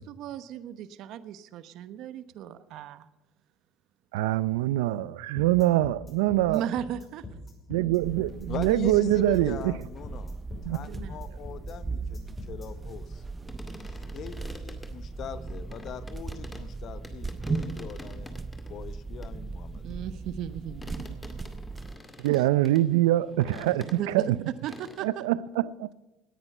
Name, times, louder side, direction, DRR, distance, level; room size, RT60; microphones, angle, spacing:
voice 1, 0.0-3.1 6.5-7.2 10.9-11.2 19.8-21.3 22.2-22.4 23.6-24.3 24.6-25.2, right 10 dB, 65° right, 0.9 m, -36 dB
voice 2, 4.1-6.7 7.7-9.7 10.6-10.8 22.2-23.8 24.1-24.4 25.0-25.9, right 15 dB, 85° right, 0.5 m, -24 dB
sound 1, 5.4-12.7, left 2 dB, 30° left, 5.8 m, -43 dB
sound 2, 8.0-22.0, right 3 dB, 25° right, 0.8 m, -38 dB
voice 3, 8.5-10.4 10.7-13.2 13.9-18.3 18.7-20.0, left 8 dB, 55° left, 1.0 m, -41 dB
sound 3, 13.5-16.7 17.0-18.7 19.2-24.4 24.7-25.1, left 1 dB, 15° left, 2.1 m, -46 dB
18.0 x 9.8 x 5.5 m
supercardioid pair, 90°, 0 cm